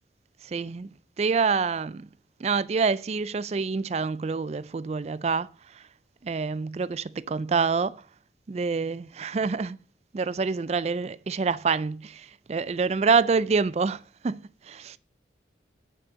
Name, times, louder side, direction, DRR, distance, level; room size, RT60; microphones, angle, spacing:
voice 1, 0.4-0.9 1.2-2.1 2.4-5.9 6.2-8.0 8.5-9.8 10.1-15.0, right 5 dB, 35° right, 0.3 m, -27 dB
9.4 x 6.1 x 6.3 m
head